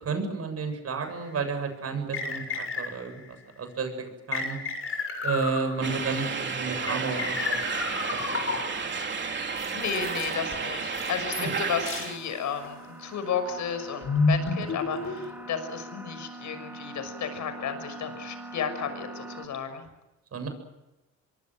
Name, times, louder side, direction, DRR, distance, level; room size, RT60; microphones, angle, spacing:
voice 1, 0.0-3.1 3.6-4.6 5.2-8.2 8.5-8.6 11.4-11.5 20.3-20.5, right 4 dB, 55° right, 7 dB, 7.8 m, -32 dB
sound 1, 1.1-1.2 2.1-3.2 4.3-6.1 6.9-8.9 9.6-10.3 10.9-11.6 11.9-12.1 12.6-12.8 13.5-15.4, left 3 dB, 45° left, 6.9 m, -31 dB
sound 2, 5.8-12.2, right 5 dB, 35° right, 3.2 m, -32 dB
voice 2, 9.5-19.8, left 7 dB, 70° left, 10 dB, 6.2 m, -33 dB
sound 3, 10.8-19.5, right 2 dB, 5° right, 4.7 m, -44 dB
25.5 x 23.0 x 7.7 m, 1.0 s
cardioid pair, 90°, 30 cm